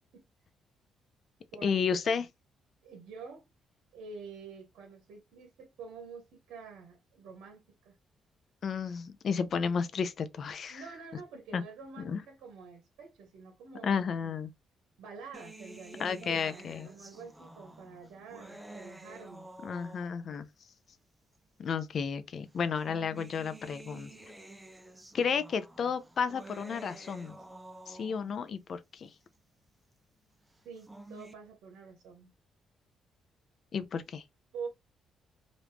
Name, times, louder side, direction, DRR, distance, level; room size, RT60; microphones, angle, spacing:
voice 1, 1.6-2.3 8.6-10.8 11.5-11.6 12.0-12.2 13.8-14.5 16.0-16.9 19.6-20.5 21.6-24.1 25.1-27.4 27.9-29.1 33.7-34.2, left 6 dB, 55° left, 0.5 m, -32 dB
voice 2, 2.8-3.4 3.9-8.0 9.5-9.6 10.7-14.0 15.0-19.5 30.6-32.3 34.5-34.7, right 5 dB, 85° right, 1.0 m, -47 dB
sound 1, 15.3-20.4 21.3-21.4 22.5-28.4 30.6-31.3, right 1 dB, 10° right, 0.5 m, -50 dB
3.0 x 2.6 x 3.3 m
cardioid pair, 90°, 0 cm